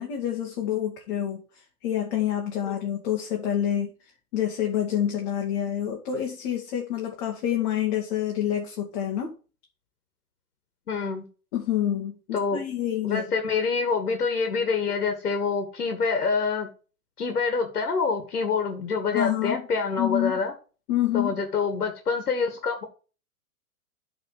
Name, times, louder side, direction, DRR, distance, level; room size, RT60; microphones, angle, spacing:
voice 1, 0.0-1.4 1.8-3.9 4.3-9.3 11.5-13.3 19.1-19.6 20.0-20.4 20.9-21.4, left 11 dB, 45° left, 1 dB, 2.0 m, -27 dB
voice 2, 10.9-11.3 12.3-12.6 13.0-16.7 17.2-20.5 21.1-22.8, left 5 dB, 90° left, 5 dB, 2.0 m, -26 dB
8.7 x 4.1 x 6.5 m, 0.36 s
hypercardioid pair, 120°, 44 cm